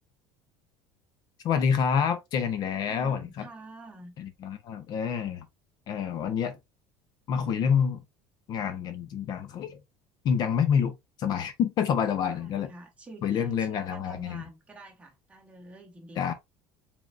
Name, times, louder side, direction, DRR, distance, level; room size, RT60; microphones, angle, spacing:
voice 1, 1.4-3.5 4.2-5.5 5.9-6.6 7.3-8.0 8.5-9.8 10.2-12.7 13.2-14.4 16.2-16.3, left 7 dB, 40° left, 0.6 m, -27 dB
voice 2, 2.7-4.1 12.2-16.3, right 1 dB, 10° right, 1.1 m, -47 dB
4.8 x 3.5 x 2.4 m
cardioid pair, 165°, 10 cm